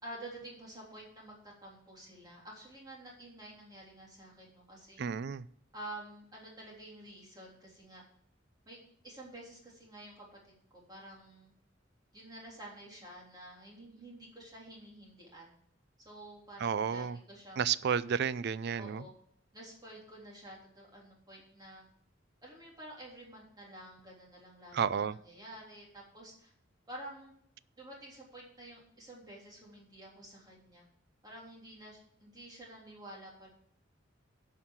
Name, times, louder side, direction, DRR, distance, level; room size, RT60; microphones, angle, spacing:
voice 1, 0.0-5.0 5.7-8.0 8.6-8.8 9.0-11.5 12.1-15.5 16.0-17.7 18.8-19.1 19.5-21.8 22.4-25.0 25.2-26.5 26.9-27.3 27.8-30.8 31.2-33.5, right 1 dB, 20° right, 3.4 m, -50 dB
voice 2, 5.0-5.5 16.6-17.2 17.6-19.0 24.7-25.2, right 7 dB, 60° right, 0.4 m, -31 dB
11.0 x 5.7 x 7.2 m
head